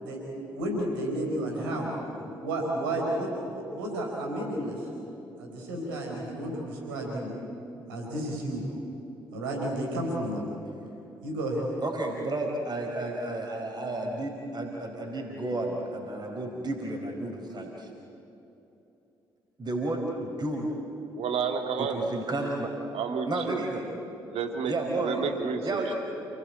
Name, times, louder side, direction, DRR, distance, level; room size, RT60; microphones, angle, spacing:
voice 1, 0.0-4.9 5.4-7.4 7.9-8.6 9.3-10.5 11.2-11.6, right 1 dB, 75° right, -1 dB, 4.7 m, -32 dB
voice 2, 11.8-17.9 19.6-20.7 21.8-22.7 23.3-23.8 24.7-25.2 25.6-25.9, right 2 dB, 35° right, 0 dB, 4.6 m, -32 dB
voice 3, 21.1-22.0 22.9-23.6 24.3-25.9, right 6 dB, 60° right, 5 dB, 2.4 m, -31 dB
29.0 x 18.5 x 8.6 m, 2.9 s
figure-of-eight pair, 40°, 12 cm